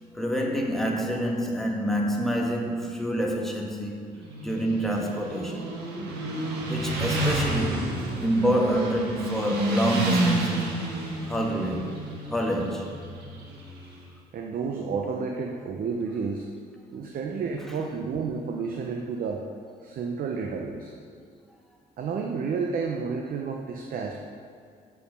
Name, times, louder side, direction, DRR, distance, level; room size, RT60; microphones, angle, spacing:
voice 1, 0.1-4.1 4.4-5.8 6.6-7.9 8.2-10.7 11.2-12.0 12.3-12.9, equal, ahead, -1 dB, 1.4 m, -27 dB
Motorcycle, 4.2-14.0, right 2 dB, 85° right, 1.3 m, -29 dB
voice 2, 14.3-16.5 16.9-19.4 19.8-20.9 22.0-24.1, right 5 dB, 60° right, 2 dB, 0.7 m, -31 dB
6.5 x 5.8 x 6.3 m, 2.2 s
cardioid pair, 80°, 17 cm